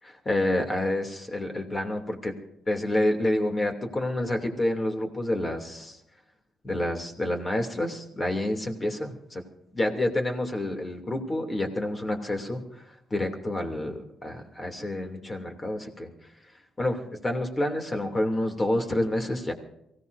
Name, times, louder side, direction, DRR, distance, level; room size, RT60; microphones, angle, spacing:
voice 1, 0.2-2.3 2.7-6.0 6.6-9.4 9.7-12.6 13.1-16.1 16.8-19.5, left 1 dB, 25° left, 4 dB, 2.8 m, -28 dB
24.0 x 17.0 x 2.7 m, 0.82 s
cardioid pair, 90°, 0 cm